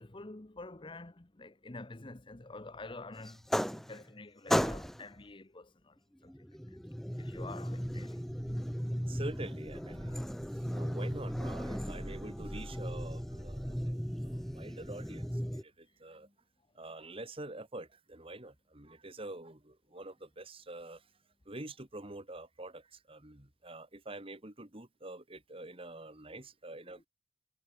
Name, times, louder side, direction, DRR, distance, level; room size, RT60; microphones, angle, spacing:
voice 1, 0.0-6.8 7.2-8.2, left 2 dB, 25° left, 0.9 m, -48 dB
sound 1, 3.3-4.2 4.5-5.1 6.3-15.6, equal, ahead, 1.5 m, -36 dB
voice 2, 9.1-10.2 10.5-16.3 16.7-21.1 21.5-27.1, right 2 dB, 30° right, 2.7 m, -46 dB
head